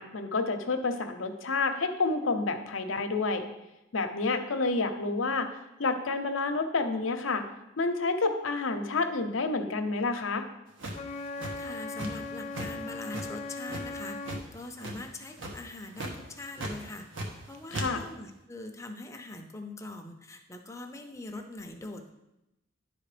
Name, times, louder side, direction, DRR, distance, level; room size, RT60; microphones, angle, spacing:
voice 1, 0.0-3.4 3.9-5.5 5.8-7.4 7.8-10.5 17.7-18.0, left 3 dB, 80° left, 6 dB, 0.8 m, -29 dB
sound 1, 10.8-12.3 12.5-12.7 13.1-14.4 14.8-15.1 15.4-15.6 15.9-16.1 16.6-17.4 17.7-17.9, right 1 dB, 70° right, 1.3 m, -36 dB
Wind instrument woodwind instrument, 10.9-14.5, left 3 dB, 35° left, 0.3 m, -39 dB
voice 2, 11.6-17.1 17.5-22.1, left 2 dB, 15° left, 4 dB, 0.7 m, -42 dB
10.5 x 4.2 x 5.0 m, 0.93 s
head